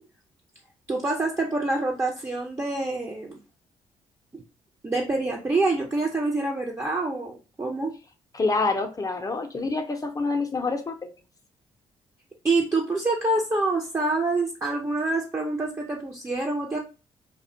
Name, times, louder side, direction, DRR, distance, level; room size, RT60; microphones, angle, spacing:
voice 1, 0.9-3.4 4.3-4.4 4.8-7.9 12.4-16.8, right 2 dB, 20° right, -1 dB, 0.5 m, -26 dB
voice 2, 8.3-11.1, left 3 dB, 25° left, 6 dB, 0.5 m, -27 dB
2.4 x 2.1 x 2.6 m, 0.31 s
hypercardioid pair, 55°, 14 cm